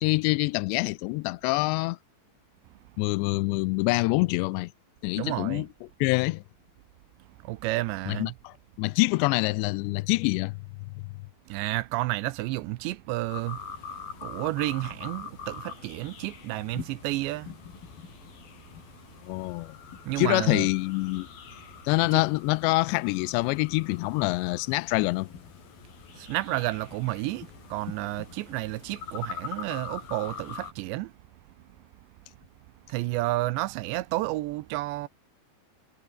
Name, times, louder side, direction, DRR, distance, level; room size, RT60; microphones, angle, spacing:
voice 1, 0.0-2.0 3.0-4.7 5.0-5.7 6.0-6.4 8.1-10.5 19.2-19.7 20.2-21.3 21.8-25.3, left 23 dB, 85° left, 2.7 m, -25 dB
voice 2, 5.1-5.6 7.4-8.3 11.5-13.6 14.2-17.5 20.1-20.7 22.1-22.2 26.1-31.1 32.9-35.1, right 18 dB, 85° right, 2.9 m, -31 dB
sound 1, 13.3-30.7, left 7 dB, 55° left, 4.9 m, -43 dB
omnidirectional pair, 5.3 m